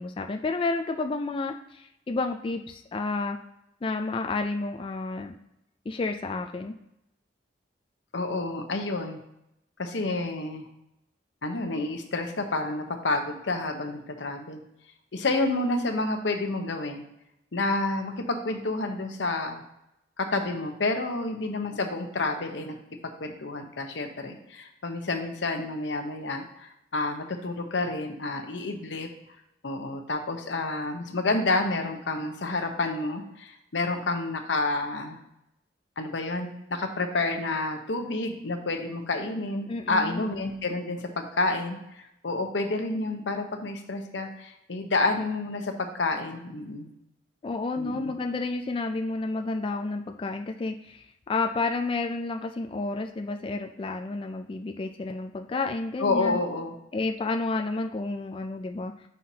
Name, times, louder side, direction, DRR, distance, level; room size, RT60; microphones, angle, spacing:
voice 1, 0.0-3.4 3.8-5.3 5.9-6.7 39.7-40.2 47.4-56.4 56.9-58.9, left 3 dB, 30° left, 4 dB, 0.3 m, -30 dB
voice 2, 8.1-9.2 9.8-10.7 11.4-14.6 15.1-17.0 17.5-19.6 20.2-22.8 23.0-29.1 29.6-35.2 36.0-46.9 47.8-48.2 56.0-56.7, left 2 dB, 90° left, 5 dB, 0.9 m, -29 dB
7.4 x 5.7 x 2.8 m, 0.84 s
head